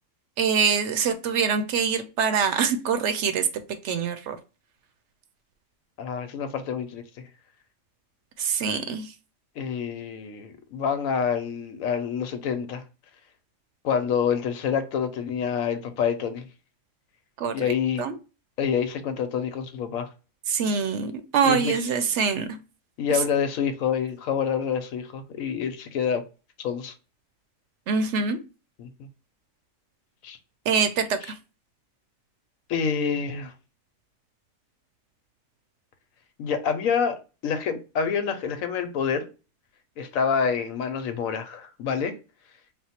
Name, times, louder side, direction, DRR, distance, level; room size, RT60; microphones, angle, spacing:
voice 1, 0.4-3.5 3.8-4.4 8.4-9.0 17.4-17.7 18.0-18.1 20.5-22.5 27.9-28.4 30.7-31.1, right 6 dB, 70° right, 0.8 m, -24 dB
voice 2, 6.0-7.3 9.6-12.8 13.8-16.5 17.5-18.1 18.6-20.1 21.4-21.9 23.0-26.2 26.6-26.9 28.8-29.1 30.2-30.4 31.2-31.3 32.7-33.5 36.4-39.3 40.0-42.2, left 7 dB, 90° left, 1.1 m, -27 dB
4.3 x 2.1 x 4.2 m
omnidirectional pair, 1.4 m